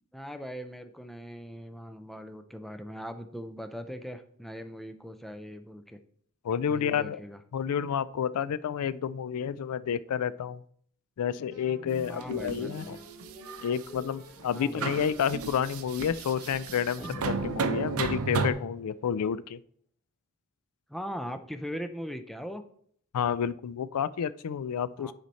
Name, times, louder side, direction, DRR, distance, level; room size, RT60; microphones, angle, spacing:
voice 1, 0.1-6.0 6.7-7.4 12.1-13.0 14.5-15.0 20.9-22.6 25.0-25.1, equal, ahead, 8 dB, 0.4 m, -40 dB
voice 2, 6.4-7.2 7.5-10.6 11.2-13.0 13.6-19.6 23.1-25.1, left 8 dB, 80° left, 17 dB, 0.4 m, -30 dB
sound 1, 11.5-19.0, right 1 dB, 15° right, 2.9 m, -47 dB
sound 2, 12.0-12.6 13.2-14.0 14.4-14.5 14.8-18.5, right 4 dB, 65° right, 0.6 m, -33 dB
9.4 x 4.3 x 4.1 m, 0.63 s
head